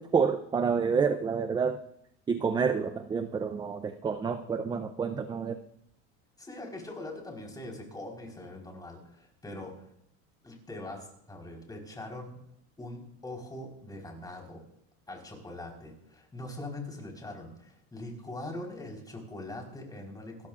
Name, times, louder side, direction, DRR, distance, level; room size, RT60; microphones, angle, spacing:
voice 1, 0.0-1.8 2.3-5.6, right 6 dB, 15° right, 9 dB, 0.5 m, -28 dB
voice 2, 6.4-9.7 10.4-12.4 12.8-14.6 15.1-20.5, left 2 dB, 10° left, 1 dB, 4.2 m, -42 dB
28.0 x 13.5 x 2.5 m, 0.74 s
cardioid pair, 150°, 35 cm